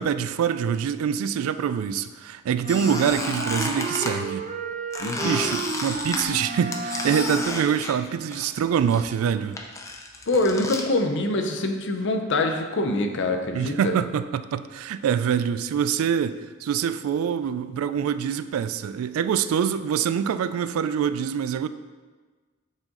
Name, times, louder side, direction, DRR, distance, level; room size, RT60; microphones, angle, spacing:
voice 1, 0.0-4.5 5.2-9.6 13.5-21.7, right 8 dB, 85° right, 14 dB, 0.3 m, -25 dB
Wind instrument woodwind instrument, 2.6-7.6, right 2 dB, 35° right, 0.5 m, -32 dB
Squeak, 2.7-4.1 4.9-8.6 8.9-10.9, left 2 dB, 15° left, 0.5 m, -32 dB
voice 2, 5.0-5.4 10.3-13.9, left 2 dB, 60° left, 5 dB, 0.6 m, -24 dB
7.2 x 4.0 x 3.8 m, 1.4 s
head